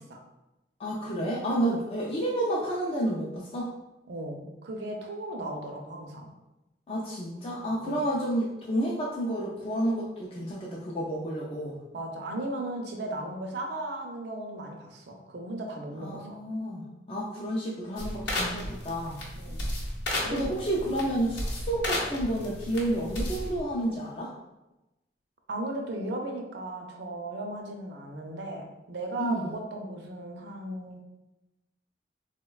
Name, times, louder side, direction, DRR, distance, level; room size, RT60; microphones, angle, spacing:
voice 1, 0.8-3.7 6.9-11.8 15.9-19.2 20.3-24.3 29.2-29.4, right 1 dB, 30° left, -5 dB, 0.3 m, -30 dB
voice 2, 4.1-6.3 7.8-8.0 11.9-16.4 19.4-19.6 20.2-20.4 25.5-31.0, right 1 dB, 70° right, 2 dB, 0.5 m, -36 dB
sound 1, 18.0-23.6, left 1 dB, 85° left, 0.8 m, -33 dB
3.7 x 2.1 x 2.3 m, 0.98 s
head